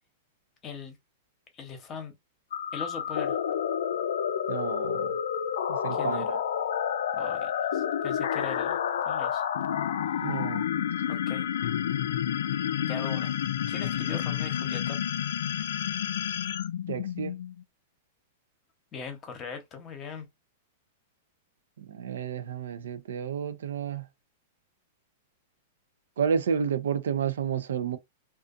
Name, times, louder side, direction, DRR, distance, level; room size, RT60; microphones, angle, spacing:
voice 1, 0.6-1.0 1.5-2.1 2.7-3.4 5.9-6.2 7.1-8.8 9.0-9.4 11.1-11.5 12.9-13.3 13.7-15.0 18.9-20.3, left 6 dB, 25° left, 0.8 m, -39 dB
sound 1, 2.5-17.6, left 9 dB, 80° left, 0.3 m, -30 dB
voice 2, 4.5-5.2 5.7-6.4 10.2-10.7 16.9-17.4 21.8-24.1 26.2-28.0, right 7 dB, 85° right, 0.4 m, -31 dB
2.5 x 2.3 x 2.4 m
hypercardioid pair, 135°, 0 cm